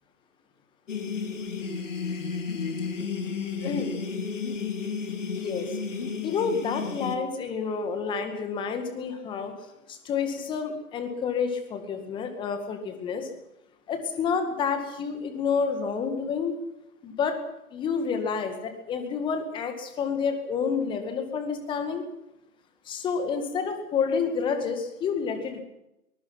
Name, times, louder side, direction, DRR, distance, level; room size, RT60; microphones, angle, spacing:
sound 1, 0.9-7.2, left 5 dB, 55° left, 3.1 m, -32 dB
voice 1, 3.6-3.9 5.4-5.8 6.2-9.5 9.9-13.3 13.9-16.6 17.0-17.4 17.7-22.1 22.9-25.6, left 6 dB, 10° left, 7 dB, 2.0 m, -29 dB
23.0 x 21.5 x 6.0 m, 0.86 s
figure-of-eight pair, 135°, 44 cm